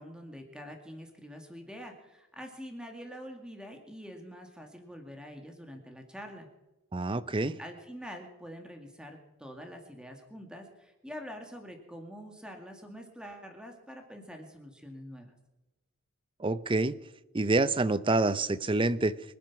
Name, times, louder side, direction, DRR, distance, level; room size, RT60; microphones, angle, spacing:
voice 1, 0.0-6.5 7.6-15.3, equal, 5° right, 4 dB, 2.1 m, -45 dB
voice 2, 6.9-7.6 16.4-17.0 17.3-19.2, right 2 dB, 25° right, 16 dB, 0.5 m, -27 dB
24.5 x 9.5 x 6.0 m, 1.1 s
head